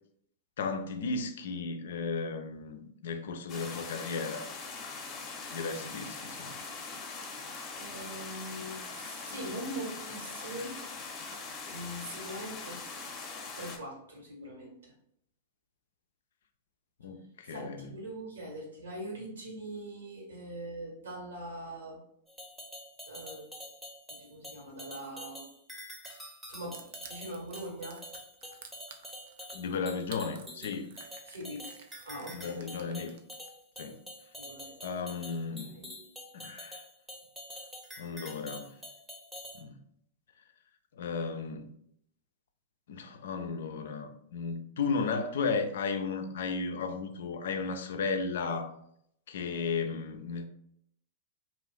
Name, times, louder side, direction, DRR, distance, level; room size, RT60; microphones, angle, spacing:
voice 1, 0.6-4.5 5.5-6.6 17.0-17.9 29.5-30.9 32.3-33.2 33.8-34.0 34.8-35.7 36.3-36.8 38.0-38.8 39.6-39.7 40.9-41.7 42.9-48.7 49.3-50.4, left 4 dB, 65° left, 0.3 m, -34 dB
sound 1, 3.5-13.8, left 4 dB, 30° left, 0.7 m, -42 dB
voice 2, 7.7-10.8 11.7-12.8 13.5-14.9 17.4-22.0 23.1-23.4 24.1-25.5 26.5-28.0 31.2-31.7 32.0-32.9 34.3-35.0 35.6-35.9, right 1 dB, 75° right, 1.3 m, -42 dB
sound 2, 22.3-39.6, equal, 5° right, 0.7 m, -46 dB
Crushing, 26.7-33.5, right 7 dB, 60° right, 0.4 m, -51 dB
2.5 x 2.4 x 3.4 m
figure-of-eight pair, 100°, 0 cm